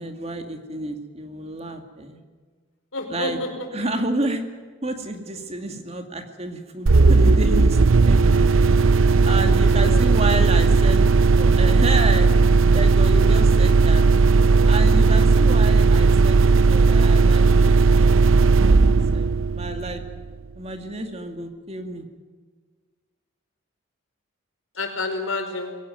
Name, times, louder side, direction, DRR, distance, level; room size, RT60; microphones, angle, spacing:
voice 1, 0.0-2.2 3.1-3.4 3.7-4.4 4.8-8.7 9.2-12.3 12.7-14.0 14.7-17.5 17.9-20.0 20.6-22.1, right 2 dB, 30° right, 6 dB, 2.3 m, -30 dB
voice 2, 2.9-3.5 9.2-10.1 14.4-14.8 24.8-25.8, left 3 dB, 90° left, 5 dB, 5.0 m, -30 dB
sound 1, 6.9-20.3, right 4 dB, 85° right, 0.7 m, -16 dB
22.5 x 17.5 x 9.3 m, 1.5 s
head